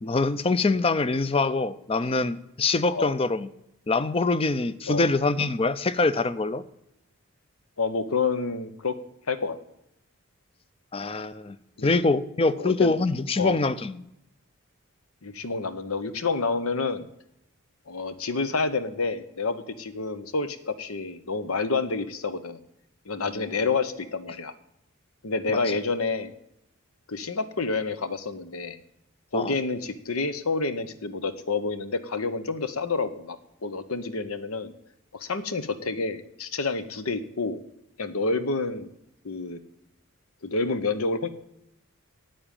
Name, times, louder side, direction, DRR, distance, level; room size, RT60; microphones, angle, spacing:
voice 1, 0.0-3.5 3.9-6.6 10.9-11.6 11.8-14.0 23.3-23.4 25.5-25.6 29.3-29.6, left 3 dB, 25° left, 15 dB, 0.5 m, -24 dB
voice 2, 7.8-8.9 9.3-9.6 11.8-11.9 12.6-12.9 13.4-13.6 15.2-17.1 17.9-22.6 23.1-24.5 25.2-26.3 27.1-28.8 29.3-34.7 35.1-37.6 38.0-38.9 39.2-39.6 40.4-41.3, left 4 dB, 75° left, 12 dB, 1.0 m, -28 dB
8.9 x 8.9 x 9.0 m, 0.82 s
head